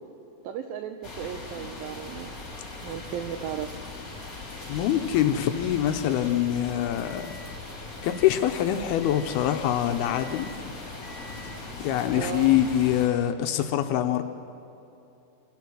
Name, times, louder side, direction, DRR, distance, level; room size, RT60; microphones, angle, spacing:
voice 1, 0.4-2.4 2.8-3.7 12.1-12.6, right 9 dB, 85° right, 7 dB, 2.0 m, -35 dB
sound 1, 1.0-13.1, left 3 dB, 20° left, 3.1 m, -40 dB
voice 2, 4.7-7.3 8.0-10.5 11.8-14.2, left 11 dB, 80° left, 7 dB, 2.4 m, -24 dB
sound 2, 6.7-8.7 9.0-9.7 10.0-10.7 11.0-11.7 12.4-12.7, left 2 dB, 40° left, 2.8 m, -49 dB
25.5 x 16.5 x 6.2 m, 2.8 s
omnidirectional pair, 4.9 m